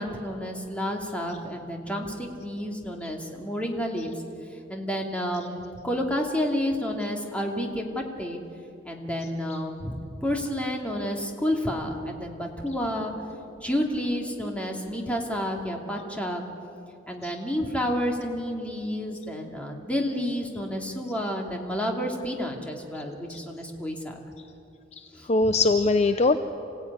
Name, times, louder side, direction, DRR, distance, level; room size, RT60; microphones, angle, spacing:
voice 1, 0.0-4.1 4.7-8.4 8.8-13.1 13.6-16.4 17.1-24.2 25.1-25.5, equal, 5° left, 1 dB, 2.6 m, -30 dB
voice 2, 25.0-26.4, left 3 dB, 35° left, 9 dB, 0.7 m, -22 dB
27.0 x 16.5 x 9.6 m, 2.7 s
head